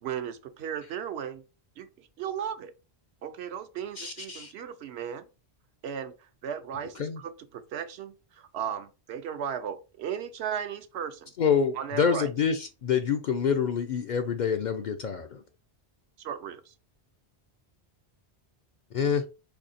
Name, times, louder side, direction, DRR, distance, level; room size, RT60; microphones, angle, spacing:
voice 1, 0.0-1.4 1.8-2.7 3.2-5.3 5.8-11.3 11.7-12.3 16.2-16.7, right 8 dB, 75° right, 0.9 m, -36 dB
voice 2, 4.0-4.5 7.0-7.2 11.4-15.4 18.9-19.3, left 7 dB, 55° left, 0.5 m, -27 dB
4.4 x 2.7 x 4.1 m
omnidirectional pair, 1.1 m